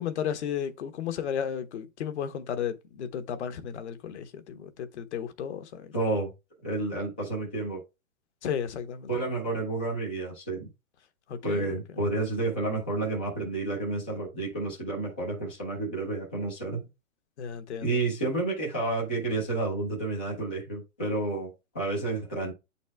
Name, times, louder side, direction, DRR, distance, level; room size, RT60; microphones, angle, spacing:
voice 1, 0.0-5.9 8.4-9.1 11.3-11.8 17.4-18.0, left 8 dB, 55° left, 1.1 m, -34 dB
voice 2, 5.9-6.3 6.6-7.8 9.1-10.7 11.4-16.9 17.8-22.5, right 2 dB, 10° left, 0.3 m, -30 dB
8.4 x 4.2 x 3.4 m
hypercardioid pair, 155°, 40 cm